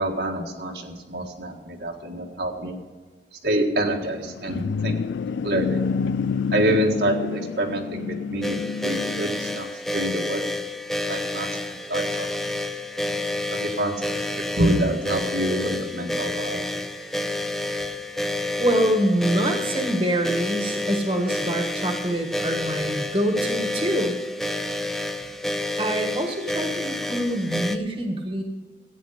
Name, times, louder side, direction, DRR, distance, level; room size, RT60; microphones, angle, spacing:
voice 1, 0.0-2.8 3.3-5.0 5.4-5.8 6.5-10.4 11.1-12.3 13.5-14.3 14.6-16.8, right 1 dB, 75° right, 1 dB, 1.8 m, -27 dB
sound 1, 4.0-9.6, left 5 dB, 90° left, 0.4 m, -28 dB
sound 2, 8.4-27.8, left 1 dB, ahead, 0.5 m, -29 dB
voice 2, 18.6-24.2 25.8-28.4, right 1 dB, 30° right, 4 dB, 1.4 m, -25 dB
14.5 x 9.4 x 5.1 m, 1.3 s
head